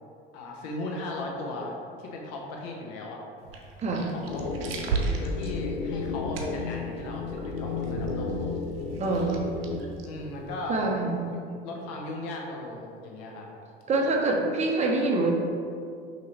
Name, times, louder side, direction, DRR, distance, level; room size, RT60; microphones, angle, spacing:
voice 1, 0.3-3.2 4.1-4.6 5.2-8.4 10.0-10.9 11.3-13.5, left 2 dB, 50° left, 0 dB, 0.9 m, -37 dB
sound 1, 3.4-10.7, right 4 dB, 70° right, 0.6 m, -36 dB
voice 2, 3.8-4.1 9.0-9.5 10.7-11.3 13.9-15.3, right 2 dB, 20° right, 0 dB, 0.7 m, -25 dB
sound 2, 4.3-9.8, left 4 dB, 90° left, 0.5 m, -33 dB
5.7 x 3.0 x 3.0 m, 2.4 s
figure-of-eight pair, 65°, 31 cm